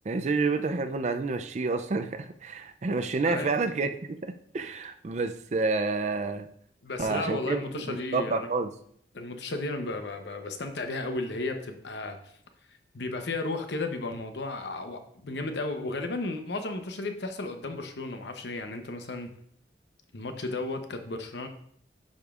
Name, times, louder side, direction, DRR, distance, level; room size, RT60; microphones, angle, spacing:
voice 1, 0.1-6.5 7.0-8.7, right 3 dB, 40° right, 9 dB, 0.4 m, -29 dB
voice 2, 6.8-8.6 9.1-12.3 12.9-19.3 20.1-21.5, left 2 dB, 75° left, 6 dB, 0.8 m, -34 dB
10.5 x 5.1 x 2.4 m, 0.66 s
head